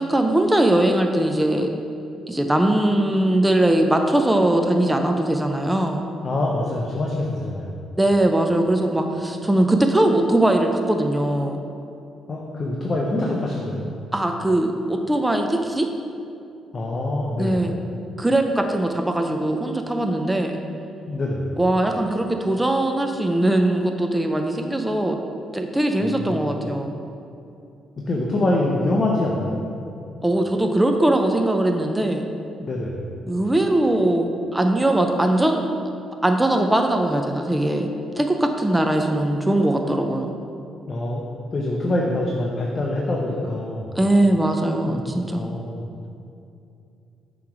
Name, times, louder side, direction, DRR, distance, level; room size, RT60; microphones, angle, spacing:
voice 1, 0.0-1.7 2.3-6.1 8.0-11.6 14.1-15.9 17.4-17.8 18.2-20.6 21.6-25.2 25.5-26.9 30.2-32.2 33.3-35.7 36.2-37.9 38.2-40.3 44.0-45.5, right 1 dB, 10° right, 4 dB, 0.4 m, -20 dB
voice 2, 6.2-7.8 12.3-13.9 16.7-17.6 21.1-21.6 26.0-26.5 28.0-29.6 32.6-33.0 40.9-41.2 41.5-43.9 44.8-45.9, left 1 dB, 40° left, -2 dB, 0.7 m, -25 dB
7.0 x 3.0 x 4.9 m, 2.6 s
cardioid pair, 90°, 0 cm